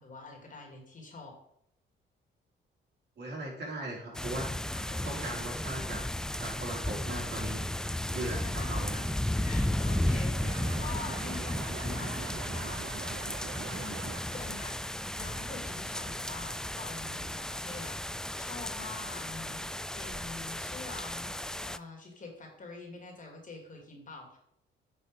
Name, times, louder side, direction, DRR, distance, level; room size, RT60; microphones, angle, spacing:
voice 1, 0.0-1.4 4.7-5.3 8.3-9.0 9.4-13.0 13.3-14.8 15.2-19.7 19.9-21.4 21.6-24.4, left 3 dB, 40° left, 1 dB, 2.7 m, -46 dB
voice 2, 3.2-4.5 5.0-6.0 6.4-7.6 8.1-8.9, right 1 dB, 55° right, -3 dB, 4.0 m, -38 dB
sound 1, 4.1-21.8, left 1 dB, 5° left, 0.3 m, -34 dB
sound 2, 10.4-14.6, right 10 dB, 80° right, 0.8 m, -44 dB
9.5 x 5.3 x 5.0 m, 0.73 s
cardioid pair, 90°, 20 cm